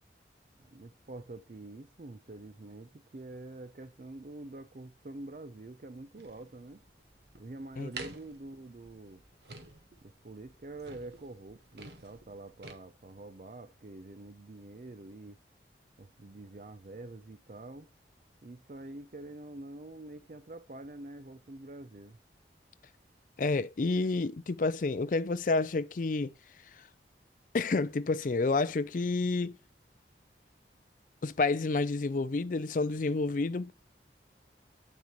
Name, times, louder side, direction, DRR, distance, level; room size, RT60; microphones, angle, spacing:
voice 1, 0.7-6.8 7.4-9.2 10.0-15.4 16.0-17.9 18.4-22.2, right 2 dB, 45° right, 0.5 m, -46 dB
sound 1, 6.2-12.7, right 3 dB, 70° right, 1.3 m, -49 dB
voice 2, 23.4-26.3 27.5-29.6 31.2-33.7, left 3 dB, 45° left, 0.4 m, -29 dB
8.6 x 6.5 x 3.0 m
head